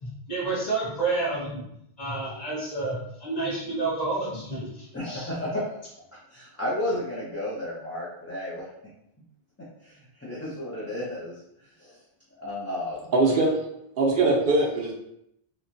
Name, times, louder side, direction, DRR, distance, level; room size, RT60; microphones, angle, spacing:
voice 1, 0.0-1.6 2.0-5.3, right 3 dB, 45° left, -7 dB, 1.1 m, -30 dB
voice 2, 4.9-5.8 6.3-8.7 9.8-11.3 11.8-12.0 12.3-13.1, left 1 dB, 20° left, -8 dB, 0.4 m, -32 dB
voice 3, 13.1-13.5 14.0-14.9, right 2 dB, 65° right, -2 dB, 0.7 m, -21 dB
3.0 x 2.2 x 2.5 m, 0.78 s
omnidirectional pair, 1.0 m